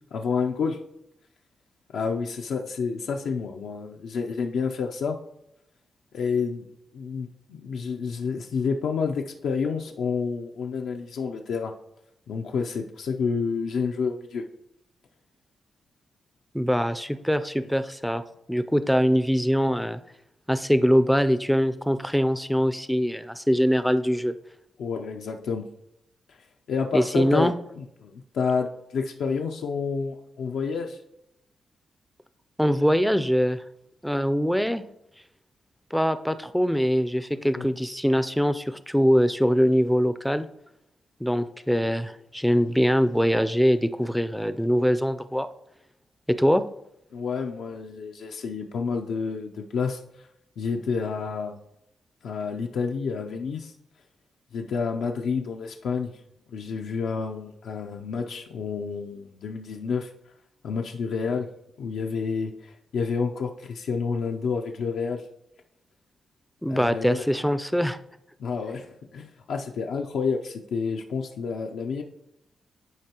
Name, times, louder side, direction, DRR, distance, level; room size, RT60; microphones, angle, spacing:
voice 1, 0.1-0.8 1.9-5.2 6.1-6.7 6.9-11.7 12.3-14.5 24.8-25.7 26.3-26.4 26.7-31.0 37.5-37.7 47.1-50.0 50.6-51.6 52.2-53.7 54.5-56.1 56.5-60.1 60.6-61.5 61.8-65.2 66.7-67.2 68.4-72.0, left 5 dB, 80° left, 2 dB, 0.5 m, -29 dB
voice 2, 16.5-18.2 18.5-20.0 20.5-24.3 26.9-27.5 32.6-33.6 34.0-34.8 35.9-40.5 41.2-45.5 46.3-46.6 66.6-68.0, equal, ahead, 11 dB, 0.4 m, -23 dB
11.0 x 4.5 x 2.9 m, 0.83 s
cardioid pair, 75°, 0 cm